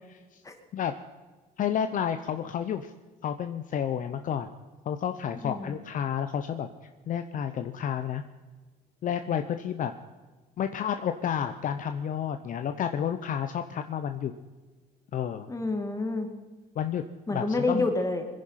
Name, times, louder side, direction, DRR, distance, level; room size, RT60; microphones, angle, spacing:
voice 1, 1.6-2.9 3.2-4.5 4.8-6.7 7.1-8.2 9.0-9.9 10.6-14.3 15.1-15.5 16.8-17.0 17.3-17.9, left 8 dB, 50° left, 8 dB, 0.8 m, -30 dB
voice 2, 5.4-5.8 15.5-16.3 17.3-18.2, left 2 dB, 20° left, 5 dB, 2.3 m, -28 dB
22.0 x 10.5 x 5.8 m, 1.3 s
cardioid pair, 110°, 17 cm